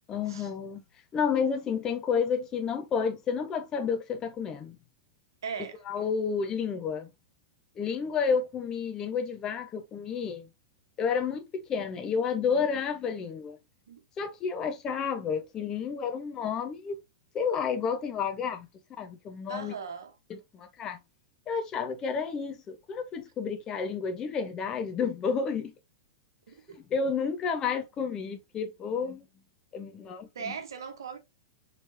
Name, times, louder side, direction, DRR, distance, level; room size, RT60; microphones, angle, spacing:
voice 1, 0.1-0.8 1.1-4.8 5.9-7.1 7.8-10.5 11.0-13.6 14.2-16.9 17.3-18.7 19.0-19.7 20.5-21.0 21.5-25.7 26.9-29.2 29.7-30.5, left 6 dB, 30° left, 0.7 m, -30 dB
voice 2, 5.4-5.8 13.9-14.0 19.5-20.2 26.5-26.8 30.3-31.2, right 6 dB, 70° right, 1.0 m, -39 dB
4.5 x 3.4 x 2.6 m
figure-of-eight pair, 100°, 2 cm